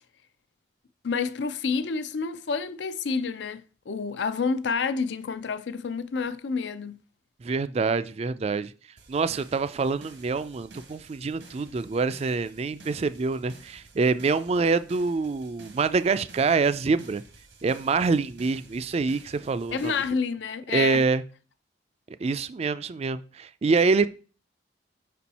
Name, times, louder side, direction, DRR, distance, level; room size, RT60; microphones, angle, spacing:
voice 1, 1.0-7.0 19.7-21.0, left 5 dB, 75° left, 0.5 m, -29 dB
voice 2, 7.4-8.7 9.1-17.2 17.6-19.9 20.7-21.2 22.2-24.1, right 4 dB, 35° right, 0.3 m, -25 dB
sound 1, 9.0-20.1, right 3 dB, 85° right, 1.4 m, -52 dB
5.4 x 4.3 x 4.1 m
head